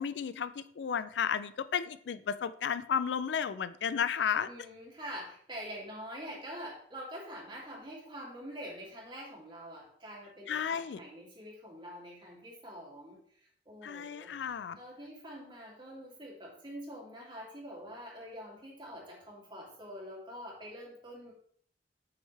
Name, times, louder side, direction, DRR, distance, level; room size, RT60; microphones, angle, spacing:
voice 1, 0.0-4.5 10.5-11.0 13.8-14.8, left 7 dB, 80° left, 15 dB, 0.4 m, -33 dB
voice 2, 4.4-21.3, equal, 25° right, -3 dB, 2.6 m, -45 dB
7.9 x 6.4 x 3.3 m, 0.62 s
head